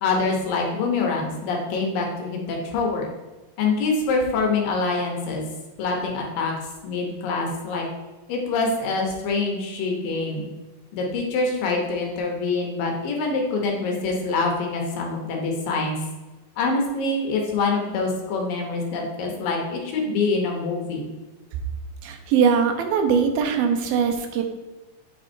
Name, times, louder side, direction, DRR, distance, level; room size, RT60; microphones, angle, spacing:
voice 1, 0.0-3.1 3.6-5.4 5.8-6.5 6.8-7.8 8.3-10.5 10.9-16.0 16.6-21.1, left 3 dB, 75° left, 1 dB, 2.7 m, -25 dB
voice 2, 22.0-24.4, right 6 dB, 90° right, 5 dB, 2.6 m, -21 dB
8.0 x 3.6 x 4.3 m, 1.2 s
omnidirectional pair, 4.1 m